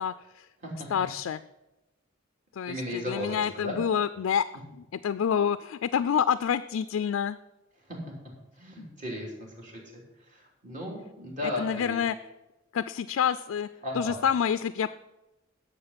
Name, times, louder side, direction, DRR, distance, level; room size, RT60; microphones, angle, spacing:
voice 1, 0.0-0.5 0.9-1.4 2.5-4.5 4.8-7.4 8.8-8.9 11.4-12.2 12.7-13.7 13.9-14.9, left 8 dB, 85° left, 12 dB, 0.4 m, -28 dB
voice 2, 2.7-3.8 7.9-8.0 8.6-12.0 13.8-14.2, left 1 dB, 40° right, -1 dB, 3.1 m, -36 dB
11.0 x 7.2 x 5.8 m, 1.0 s
head